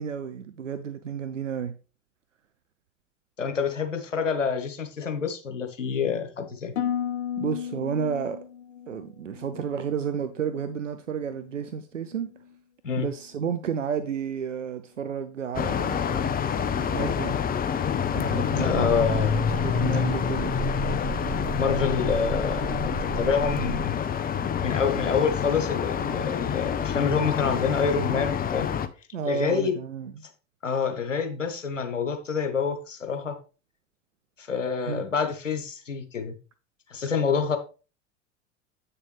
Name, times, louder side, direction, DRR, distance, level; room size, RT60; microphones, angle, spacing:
voice 1, 0.0-1.8 7.4-8.4 8.9-12.3 13.0-17.4 18.1-18.9 19.3-20.5 29.1-30.2 34.9-35.0, right 7 dB, 85° right, 0.6 m, -32 dB
voice 2, 3.4-6.7 12.8-13.1 18.6-19.4 19.9-20.1 21.6-24.0 24.6-28.7 29.2-29.7 30.6-33.4 34.4-36.3 36.9-37.6, left 6 dB, 85° left, 1.3 m, -27 dB
Harp, 6.8-10.9 11.2-11.7 12.2-12.5, left 9 dB, 60° left, 0.9 m, -35 dB
sound 1, 15.5-28.9, left 8 dB, 25° left, 0.8 m, -27 dB
sound 2, 18.7-23.9, right 6 dB, 30° right, 1.5 m, -34 dB
8.7 x 6.7 x 3.3 m
figure-of-eight pair, 75°, 37 cm